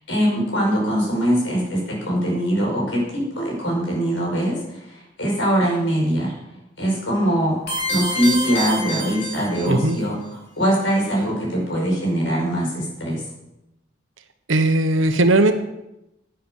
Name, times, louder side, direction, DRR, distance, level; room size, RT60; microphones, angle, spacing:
voice 1, 0.1-6.3 6.8-7.6 7.9-10.2 10.6-13.2, equal, 70° left, -2 dB, 5.2 m, -22 dB
sound 1, 7.7-10.0, equal, 55° left, 3.5 m, -27 dB
voice 2, 9.6-10.0 14.5-15.5, right 2 dB, 80° right, 8 dB, 1.2 m, -17 dB
11.0 x 9.2 x 6.5 m, 0.89 s
head